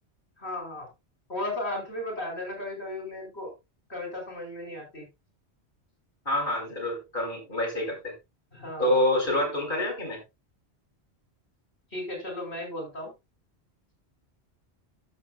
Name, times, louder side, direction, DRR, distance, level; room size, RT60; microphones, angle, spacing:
voice 1, 0.4-0.9 1.3-3.5 3.9-5.1 8.5-8.9 11.9-13.1, left 1 dB, 70° left, 5.5 m, -35 dB
voice 2, 6.3-8.1 8.8-10.2, left 1 dB, 45° left, 5.5 m, -27 dB
14.0 x 9.6 x 2.4 m
omnidirectional pair, 1.1 m